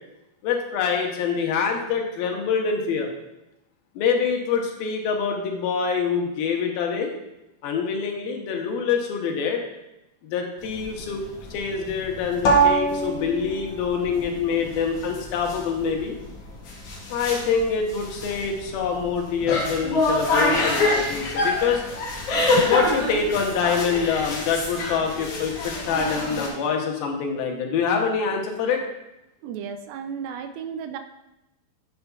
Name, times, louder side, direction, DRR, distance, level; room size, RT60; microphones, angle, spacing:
voice 1, 0.4-3.1 4.0-7.1 7.6-9.6 10.2-11.2 11.5-16.2 17.1-21.8 22.5-28.8, left 6 dB, 80° left, 2 dB, 2.7 m, -25 dB
sound 1, 10.6-26.5, equal, 60° left, 1.6 m, -26 dB
voice 2, 29.4-31.0, right 7 dB, 80° right, 7 dB, 2.3 m, -33 dB
8.2 x 7.8 x 2.3 m, 0.91 s
omnidirectional pair, 4.4 m